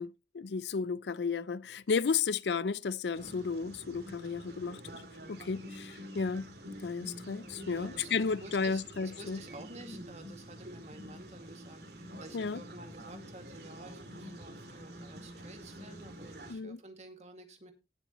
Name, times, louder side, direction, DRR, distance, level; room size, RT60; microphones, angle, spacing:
voice 1, 0.0-5.0 5.3-6.5 6.8-9.4 12.3-12.6 16.5-16.8, left 5 dB, 75° left, 0.5 m, -33 dB
sound 1, 3.1-16.6, equal, 65° right, 2.7 m, -48 dB
voice 2, 7.7-17.7, right 2 dB, 40° right, 2.1 m, -51 dB
17.5 x 7.0 x 3.0 m
head